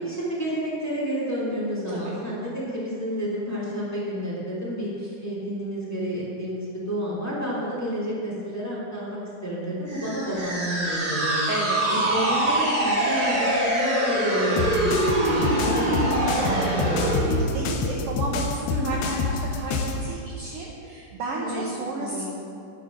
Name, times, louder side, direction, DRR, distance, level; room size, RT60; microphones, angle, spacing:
voice 1, 0.0-4.9 5.2-11.5 11.9-16.2 18.7-19.0 21.3-21.6 21.9-22.2, equal, 5° left, -7 dB, 2.6 m, -30 dB
sound 1, 9.9-17.3, right 1 dB, 35° right, 0.8 m, -24 dB
voice 2, 11.5-12.0 16.3-22.2, right 3 dB, 60° right, -2 dB, 1.6 m, -32 dB
sound 2, 14.6-20.0, left 4 dB, 75° left, 2.1 m, -27 dB
10.5 x 8.4 x 6.4 m, 2.5 s
omnidirectional pair, 3.8 m